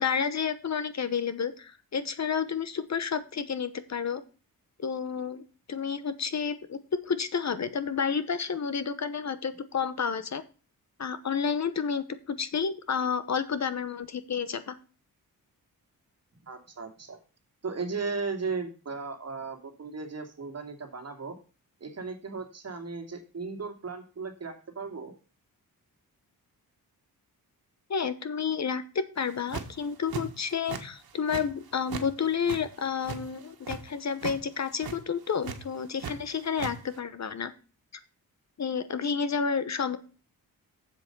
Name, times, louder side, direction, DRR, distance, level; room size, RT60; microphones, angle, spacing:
voice 1, 0.0-4.2 4.8-10.4 11.0-14.7 27.9-37.5 38.6-40.0, left 6 dB, 45° left, 13 dB, 1.0 m, -30 dB
voice 2, 16.4-17.2 17.6-21.3 21.8-25.1, right 4 dB, 45° right, 5 dB, 2.5 m, -36 dB
sound 1, 29.2-29.8 30.1-30.8 31.1-32.1 32.3-33.8 34.1-34.4 34.7-35.0 35.4-36.1 36.4-36.7, right 6 dB, 75° right, 1.7 m, -37 dB
7.8 x 7.5 x 5.3 m, 0.35 s
wide cardioid pair, 120°, 36 cm